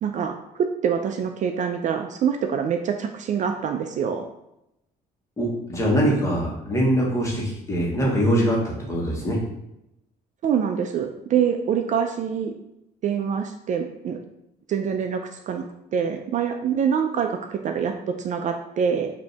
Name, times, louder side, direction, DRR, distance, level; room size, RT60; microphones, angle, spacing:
voice 1, 0.0-4.3 10.4-12.5 13.0-14.2 14.7-15.6 15.9-17.9 18.2-19.1, right 7 dB, 45° right, 5 dB, 0.4 m, -25 dB
voice 2, 5.4-9.4, equal, 15° left, -3 dB, 1.4 m, -23 dB
5.0 x 2.7 x 3.3 m, 0.84 s
cardioid pair, 110°, 17 cm